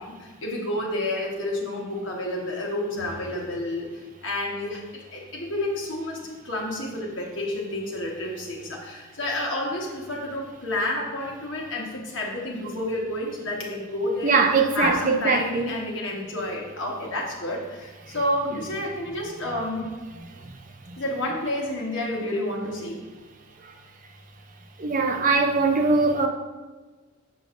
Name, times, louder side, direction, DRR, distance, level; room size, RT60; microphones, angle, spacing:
voice 1, 0.0-3.9 4.2-14.4 14.7-19.9 21.0-23.0, left 1 dB, 65° left, 1.4 m, -30 dB
voice 2, 14.2-15.7 20.9-21.0 24.8-26.3, right 4 dB, 40° right, 0.6 m, -21 dB
6.9 x 6.3 x 2.6 m
head